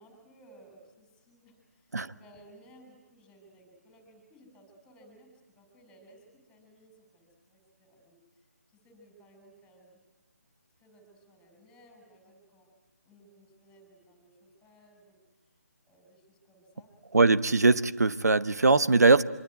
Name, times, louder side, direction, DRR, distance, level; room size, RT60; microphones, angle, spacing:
voice 1, 0.0-10.0 10.7-12.7 13.1-15.2 15.9-16.9, right 1 dB, 10° left, 6.0 m, -58 dB
voice 2, 17.1-19.2, right 3 dB, 75° right, 1.2 m, -21 dB
25.0 x 23.5 x 9.4 m
figure-of-eight pair, 155°, 9 cm